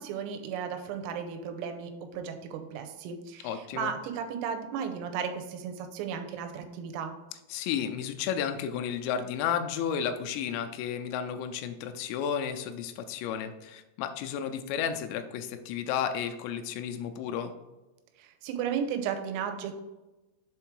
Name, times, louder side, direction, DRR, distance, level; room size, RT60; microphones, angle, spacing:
voice 1, 0.0-7.1 18.2-19.8, right 7 dB, 90° right, 6 dB, 3.4 m, -35 dB
voice 2, 3.4-3.9 7.5-17.5, left 8 dB, 85° left, 7 dB, 3.2 m, -32 dB
7.6 x 3.6 x 4.6 m, 1.1 s
omnidirectional pair, 5.9 m